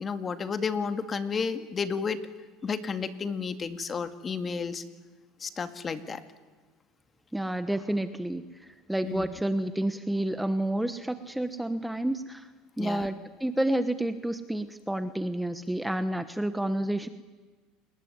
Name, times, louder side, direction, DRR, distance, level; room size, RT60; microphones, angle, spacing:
voice 1, 0.0-2.2 2.6-4.8 5.4-6.2 9.0-9.3 12.8-13.1, left 5 dB, 25° left, 10 dB, 2.1 m, -32 dB
voice 2, 7.3-12.5 12.8-17.1, right 1 dB, 5° right, 11 dB, 1.3 m, -30 dB
29.0 x 20.5 x 9.7 m, 1.4 s
supercardioid pair, 115°, 0 cm